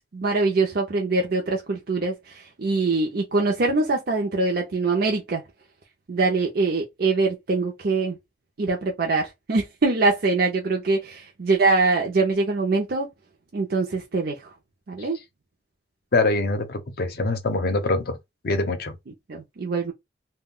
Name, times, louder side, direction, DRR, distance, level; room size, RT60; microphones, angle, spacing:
voice 1, 0.1-5.4 6.1-8.2 8.6-13.1 13.5-14.4 14.9-15.2 19.3-19.9, right 3 dB, 55° right, 0.5 m, -23 dB
voice 2, 16.1-18.2 18.4-18.9, left 2 dB, 55° left, 0.6 m, -24 dB
2.2 x 2.2 x 3.6 m
head